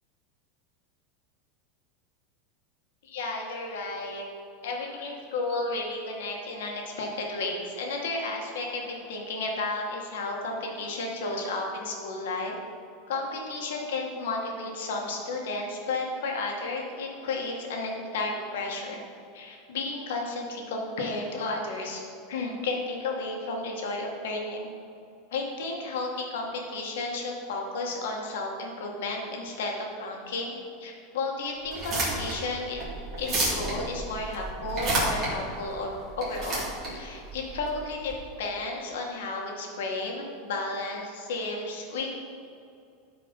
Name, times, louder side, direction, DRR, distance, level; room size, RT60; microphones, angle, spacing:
voice 1, 3.0-4.2 4.6-12.6 13.1-19.0 19.3-22.0 22.3-24.7 25.3-32.8 33.2-36.7 36.9-38.1 38.4-42.1, left 3 dB, 90° left, 0 dB, 1.9 m, -33 dB
sound 1, 31.6-38.1, right 2 dB, 25° right, 2.6 m, -31 dB
13.0 x 4.9 x 5.4 m, 2.6 s
supercardioid pair, 170°, 0 cm